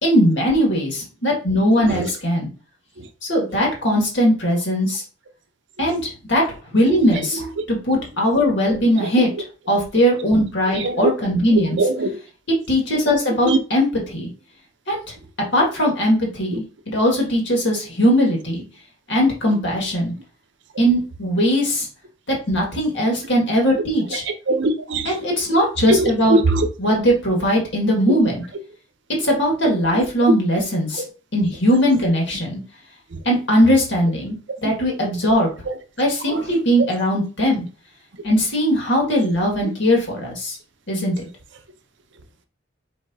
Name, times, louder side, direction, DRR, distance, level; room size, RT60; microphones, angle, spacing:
voice 1, 0.0-2.5 3.2-5.0 5.8-6.4 6.7-7.4 7.7-9.3 9.7-11.8 12.7-14.3 14.9-15.0 15.5-16.6 16.9-18.6 19.1-20.1 20.8-21.9 22.3-24.2 25.0-26.4 26.8-28.4 29.2-31.0 31.3-32.6 33.3-34.4 34.6-35.5 36.0-37.7 38.2-40.6 40.9-41.1, equal, 60° left, 1.8 m, -19 dB
voice 2, 10.7-11.1 11.8-12.1 13.5-13.6 24.5-25.1 25.9-26.7 29.1-29.2 36.3-36.4, right 2 dB, 55° right, 0.7 m, -20 dB
4.7 x 4.2 x 2.7 m
head